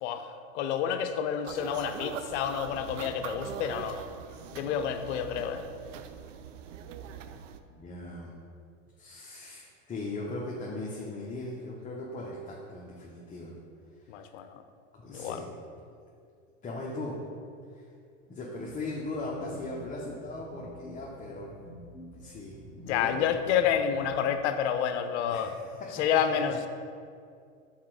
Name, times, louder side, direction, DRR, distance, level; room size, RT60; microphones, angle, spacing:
voice 1, 0.0-4.0 4.5-5.6 14.1-14.6 15.1-15.4 22.8-25.5 25.9-26.6, left 8 dB, 65° left, 9 dB, 0.6 m, -29 dB
sound 1, 1.5-7.6, right 8 dB, 80° right, 0.5 m, -42 dB
voice 2, 7.7-8.3 9.0-13.5 14.0-14.2 14.9-15.4 16.6-17.2 17.7-17.9 18.3-21.5 22.1-23.5 25.3-25.5 25.9-26.0, left 2 dB, 20° left, -4 dB, 0.9 m, -39 dB
sound 2, 18.6-24.2, right 1 dB, 15° right, 1.0 m, -49 dB
5.7 x 4.3 x 4.8 m, 2.3 s
hypercardioid pair, 100°, 37 cm